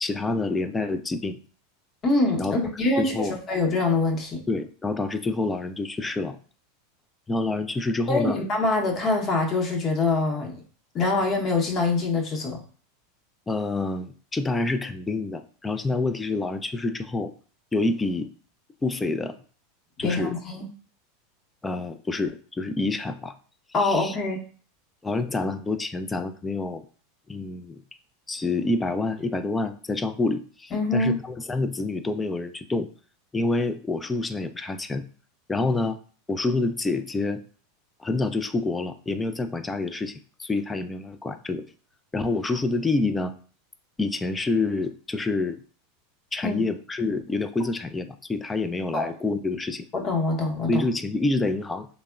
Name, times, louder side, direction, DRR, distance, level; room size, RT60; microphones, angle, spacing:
voice 1, 0.0-1.4 2.4-2.6 3.0-3.4 4.5-6.4 7.3-8.4 13.5-17.3 17.7-18.3 18.8-19.4 20.0-20.3 21.6-23.3 23.8-24.2 25.0-26.8 27.3-27.8 28.3-32.9 33.3-35.0 35.5-36.0 36.3-37.4 38.0-41.6 42.1-43.3 44.0-45.6 46.3-49.8 50.7-51.9, left 3 dB, 15° left, 10 dB, 0.3 m, -27 dB
voice 2, 2.0-4.4 8.1-10.6 10.9-12.6 20.0-20.7 23.7-24.4 30.7-31.1 46.4-46.6 48.9-49.1 49.9-50.8, left 3 dB, 35° left, 1 dB, 0.8 m, -24 dB
3.5 x 2.0 x 2.3 m, 0.42 s
hypercardioid pair, 100°, 0 cm